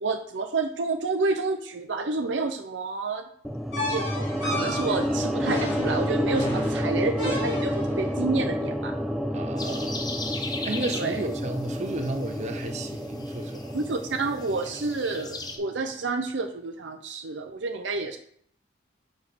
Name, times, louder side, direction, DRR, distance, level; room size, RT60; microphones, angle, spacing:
voice 1, 0.0-3.3 3.9-8.9 10.9-11.2 13.7-18.2, right 3 dB, 70° right, 0.6 m, -29 dB
sound 1, 3.4-15.7, equal, ahead, 0.4 m, -30 dB
sound 2, 3.7-8.0, left 1 dB, 70° left, 2.7 m, -33 dB
voice 2, 9.3-10.1 10.6-13.8, right 2 dB, 40° right, 0.8 m, -33 dB
sound 3, 9.6-15.6, left 3 dB, 20° left, 0.8 m, -39 dB
5.4 x 5.1 x 6.0 m
head